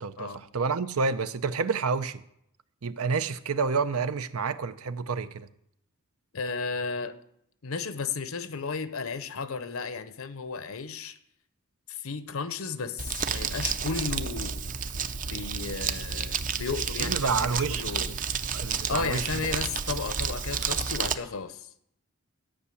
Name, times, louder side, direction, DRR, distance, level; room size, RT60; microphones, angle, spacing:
voice 1, 0.0-2.2 2.8-5.5 17.0-18.2 18.5-19.3, right 5 dB, 85° right, 0.6 m, -29 dB
voice 2, 6.3-7.2 7.6-11.2 11.9-14.6 15.3-18.1 18.7-21.7, left 4 dB, 75° left, 0.8 m, -34 dB
Crumpling crinkling, 13.0-21.1, right 6 dB, 40° right, 0.6 m, -31 dB
12.5 x 5.7 x 8.4 m
head